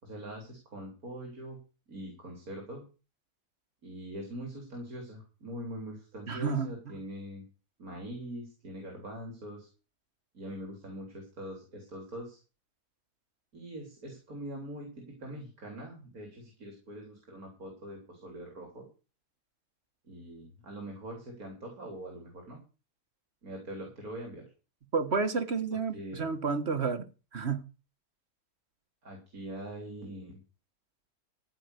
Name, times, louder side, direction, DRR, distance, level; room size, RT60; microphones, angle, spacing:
voice 1, 0.0-1.6 1.9-2.8 3.8-7.4 7.8-9.7 10.3-12.4 13.5-18.9 20.0-22.6 23.4-24.5 25.7-26.2 29.0-30.4, right 1 dB, 65° right, 4.0 m, -43 dB
voice 2, 6.3-6.7 24.9-27.1 27.3-27.6, right 5 dB, 45° right, 1.7 m, -30 dB
15.0 x 5.7 x 8.2 m
omnidirectional pair, 1.6 m